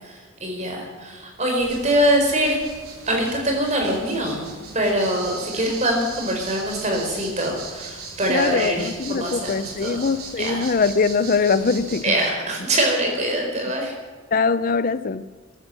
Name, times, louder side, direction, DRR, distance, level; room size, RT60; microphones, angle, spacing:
voice 1, 0.4-2.6 3.1-10.0 10.4-10.6 12.0-13.9, right 1 dB, 35° right, 4.5 m, -23 dB
sound 1, 1.6-12.0, right 4 dB, 90° right, 3.8 m, -38 dB
voice 2, 8.3-12.2 14.3-15.2, left 4 dB, 40° left, 0.5 m, -22 dB
15.0 x 12.5 x 7.6 m
head